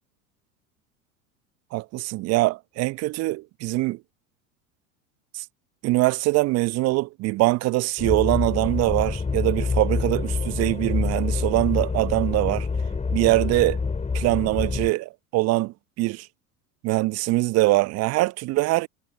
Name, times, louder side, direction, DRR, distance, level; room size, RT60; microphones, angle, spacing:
voice 1, 1.7-4.0 5.3-5.4 5.8-12.7 13.1-13.8 14.1-16.3 16.8-18.9, right 20 dB, 35° right, 1.0 m, -23 dB
sound 1, 8.0-14.9, left 4 dB, 15° left, 6.5 m, -27 dB
figure-of-eight pair, 80°, 42 cm